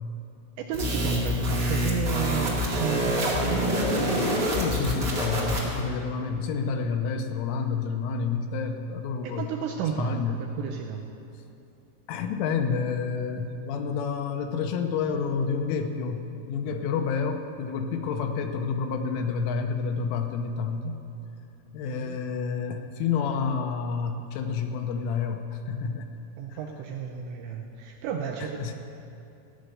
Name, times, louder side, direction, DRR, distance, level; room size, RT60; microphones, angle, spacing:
voice 1, 0.6-4.2 9.2-11.0 21.9-22.2 26.4-28.7, right 7 dB, 85° right, 1 dB, 2.7 m, -32 dB
sound 1, 0.7-5.8, equal, 40° right, 1.6 m, -26 dB
voice 2, 4.6-9.5 10.0-10.4 12.1-21.0 21.7-26.1 28.6-28.7, left 5 dB, 85° left, 5 dB, 3.1 m, -29 dB
16.0 x 6.4 x 9.1 m, 2.7 s
omnidirectional pair, 5.9 m